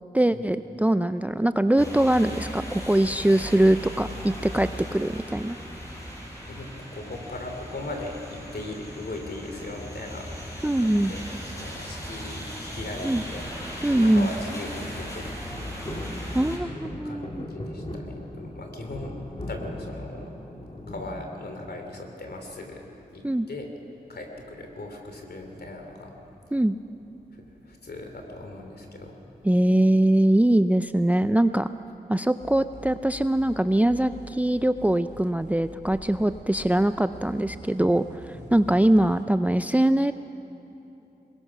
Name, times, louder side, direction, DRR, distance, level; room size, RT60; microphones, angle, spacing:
voice 1, 0.1-5.6 10.6-11.1 13.0-13.2 13.8-14.3 16.3-17.4 23.2-23.5 26.5-26.7 29.4-31.7 32.1-40.1, right 1 dB, 10° right, 11 dB, 0.5 m, -22 dB
sound 1, 1.8-16.6, equal, 20° left, 5.7 m, -37 dB
voice 2, 6.5-10.3 10.8-13.4 13.8-15.8 17.0-19.1 19.5-20.4 20.9-22.8 23.1-23.7 24.1-26.1 27.3-29.2 38.3-38.5, left 2 dB, 70° left, 3 dB, 3.0 m, -39 dB
sound 2, 15.8-22.0 22.4-23.1 24.3-24.8 25.0-25.1 25.4-25.7 26.5-27.4 27.9-28.0, left 1 dB, 35° left, 2.2 m, -39 dB
sound 3, 32.4-39.2, right 2 dB, 75° right, 2.9 m, -45 dB
21.5 x 21.0 x 6.0 m, 2.8 s
cardioid pair, 55°, 17 cm